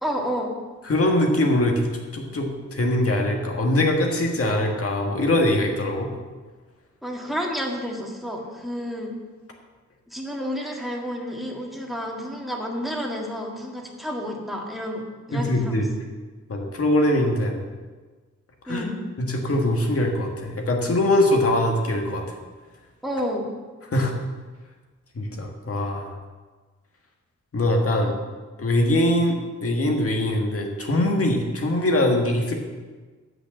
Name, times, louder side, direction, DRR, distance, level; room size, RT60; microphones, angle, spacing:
voice 1, 0.0-0.6 7.0-9.2 10.1-15.0 15.3-15.8 18.7-19.0 23.0-23.5, equal, ahead, -1 dB, 1.8 m, -30 dB
voice 2, 0.9-1.9 2.1-6.1 15.3-15.9 16.5-17.6 18.6-18.8 19.2-22.2 23.9-24.1 25.1-26.1 27.5-28.2 28.6-32.5, left 1 dB, 50° left, 1 dB, 1.8 m, -22 dB
8.5 x 5.9 x 7.2 m, 1.4 s
wide cardioid pair, 90°, 30 cm